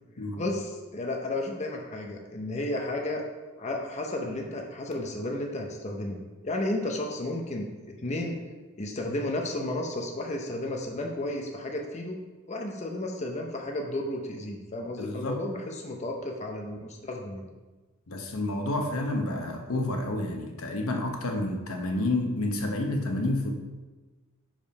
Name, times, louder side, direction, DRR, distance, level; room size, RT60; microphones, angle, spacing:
voice 1, 0.2-3.2 3.6-8.4 8.8-12.2 12.5-17.5, left 1 dB, 30° left, 1 dB, 0.7 m, -33 dB
voice 2, 15.0-15.4 18.1-23.5, left 2 dB, 75° left, 3 dB, 0.9 m, -29 dB
5.2 x 5.0 x 5.2 m, 1.2 s
head